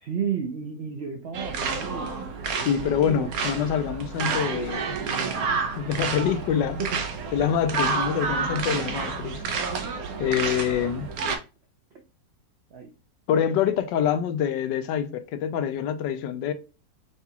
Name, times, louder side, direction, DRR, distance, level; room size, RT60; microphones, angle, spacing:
voice 1, 0.0-2.1 2.6-3.3 5.0-5.6 5.8-6.4 6.8-7.0 7.4-7.5 7.8-7.9 8.7-9.1 11.9-12.0 12.7-12.9, right 7 dB, 80° right, 0.5 m, -34 dB
sound 1, 1.3-11.4, right 5 dB, 65° right, 1.0 m, -29 dB
voice 2, 2.6-5.0 5.8-6.8 7.3-9.4 10.2-11.1 13.3-16.5, left 8 dB, 80° left, 1.2 m, -26 dB
5.8 x 2.3 x 2.8 m
omnidirectional pair, 1.9 m